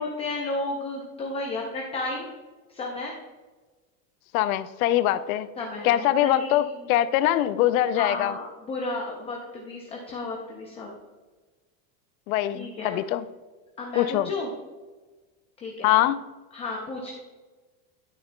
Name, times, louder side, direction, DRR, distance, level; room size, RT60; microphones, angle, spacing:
voice 1, 0.0-2.3 2.7-3.1 5.6-7.0 7.9-10.9 12.5-13.0 13.8-14.5 15.6-15.9 16.5-17.1, left 2 dB, 15° left, -2 dB, 0.5 m, -33 dB
voice 2, 4.3-5.5 5.8-8.4 12.3-13.2 13.9-14.3 15.8-16.2, left 13 dB, 65° left, 14 dB, 0.6 m, -23 dB
11.5 x 6.6 x 2.2 m, 1.3 s
supercardioid pair, 165°, 45 cm